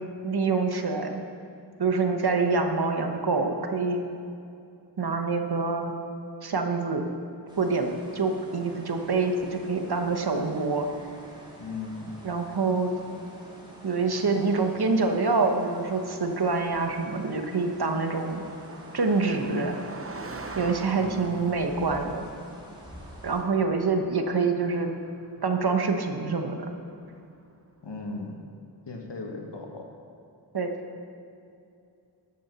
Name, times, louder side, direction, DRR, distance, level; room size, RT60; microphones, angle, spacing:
voice 1, 0.2-1.2 1.8-4.0 5.0-5.9 6.4-7.1 7.6-10.9 12.2-12.9 13.8-18.4 18.9-19.8 20.5-22.2 23.2-24.9 25.4-26.7 30.5-30.7, right 4 dB, 65° right, 5 dB, 1.1 m, -26 dB
sound 1, 7.5-23.4, right 1 dB, 10° right, 2.4 m, -49 dB
voice 2, 11.6-12.1 21.0-21.3 27.8-28.4 28.9-29.9, left 3 dB, 80° left, 2 dB, 1.5 m, -37 dB
Car passing by, 13.8-27.5, right 3 dB, 30° right, 0.8 m, -46 dB
11.5 x 7.3 x 6.0 m, 2.6 s
wide cardioid pair, 70°, 42 cm